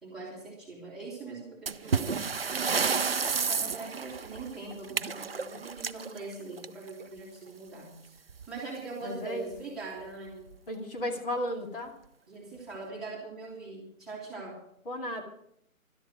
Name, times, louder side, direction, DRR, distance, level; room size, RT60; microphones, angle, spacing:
voice 1, 0.0-2.2 2.5-8.2 8.5-10.5 12.3-14.6, right 3 dB, ahead, -8 dB, 2.6 m, -41 dB
sound 1, 1.7-7.0 8.3-8.5 8.8-8.9 9.5-9.6 10.3-10.6, right 5 dB, 45° right, 0.5 m, -31 dB
voice 2, 9.0-9.5 10.7-11.9 14.9-15.2, left 1 dB, 40° left, 2 dB, 2.3 m, -34 dB
12.5 x 12.0 x 6.4 m, 0.71 s
figure-of-eight pair, 160°, 43 cm